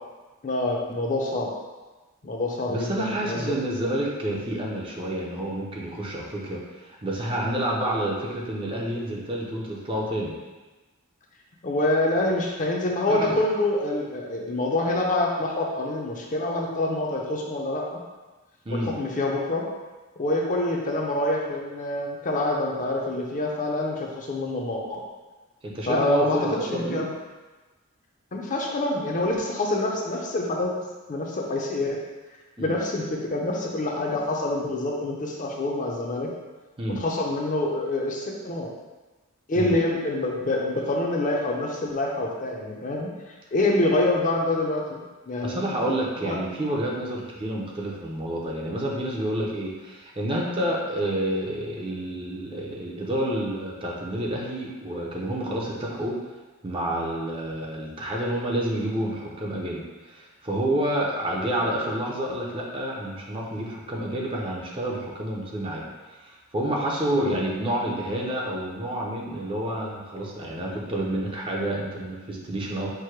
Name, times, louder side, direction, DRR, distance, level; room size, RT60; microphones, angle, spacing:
voice 1, 0.4-1.5 2.2-3.6 11.6-18.0 18.7-19.6 20.2-25.0 25.9-27.1 28.3-30.7 31.1-32.0 32.6-36.3 36.9-38.7 39.5-45.9 46.2-46.4 67.1-67.3, left 2 dB, 35° left, -1 dB, 0.5 m, -26 dB
voice 2, 2.7-10.3 13.1-13.4 18.7-18.9 25.6-27.1 32.6-32.7 36.8-37.0 39.6-39.7 45.4-56.1 56.6-65.9 66.1-72.9, right 1 dB, 25° right, -2 dB, 0.5 m, -29 dB
4.6 x 2.1 x 4.5 m, 1.2 s
head